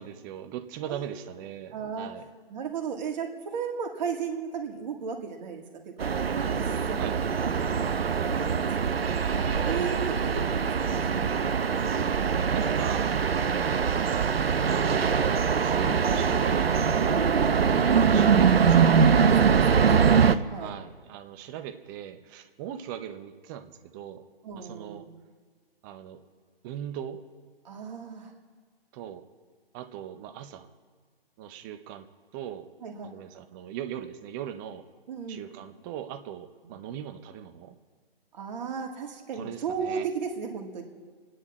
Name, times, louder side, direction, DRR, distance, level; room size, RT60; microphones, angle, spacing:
voice 1, 0.0-2.2 7.0-7.2 12.0-13.1 13.8-14.4 15.6-18.9 20.6-24.2 24.5-25.1 25.8-26.2 26.6-27.2 28.9-29.2 29.7-30.7 31.4-32.1 32.3-32.7 33.0-34.8 35.3-37.7 39.3-40.1, right 10 dB, 20° right, 9 dB, 0.7 m, -39 dB
voice 2, 1.7-2.1 2.5-6.1 6.3-7.2 7.6-8.9 9.4-11.2 18.2-18.8 19.1-20.7 24.4-25.1 27.6-28.3 32.8-33.1 35.1-35.4 36.6-36.7 38.3-40.8, right 6 dB, 45° right, 2 dB, 2.3 m, -35 dB
sound 1, 6.0-20.4, right 6 dB, 85° right, 0.8 m, -23 dB
27.5 x 10.0 x 4.2 m, 1.5 s
hypercardioid pair, 140°, 30 cm